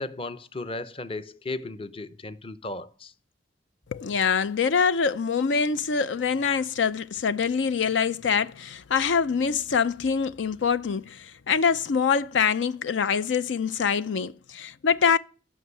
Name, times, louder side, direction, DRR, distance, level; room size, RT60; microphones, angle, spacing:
voice 1, 0.0-3.1, left 2 dB, 30° left, 0.7 m, -35 dB
voice 2, 3.9-15.2, left 6 dB, 85° left, 0.5 m, -24 dB
15.0 x 6.2 x 8.2 m
head